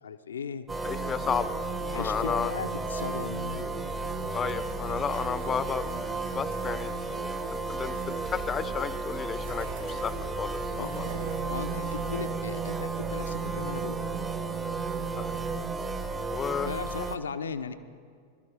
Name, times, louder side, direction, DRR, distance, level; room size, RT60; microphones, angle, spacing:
voice 1, 0.0-0.7 1.9-3.7 10.8-14.2 16.6-17.7, left 6 dB, 70° left, 10 dB, 0.6 m, -37 dB
sound 1, 0.7-17.2, right 2 dB, 15° right, 0.9 m, -34 dB
voice 2, 0.8-1.6 1.9-2.5 4.3-6.0 6.3-6.9 7.5-11.1 15.2-15.4 16.3-16.7, left 7 dB, 20° left, 15 dB, 0.6 m, -32 dB
sound 2, 4.5-12.0, right 6 dB, 75° right, 3.0 m, -47 dB
Wind instrument woodwind instrument, 10.7-15.8, right 15 dB, 35° right, 0.3 m, -37 dB
21.5 x 13.0 x 4.9 m, 2.2 s
figure-of-eight pair, 90°, 0 cm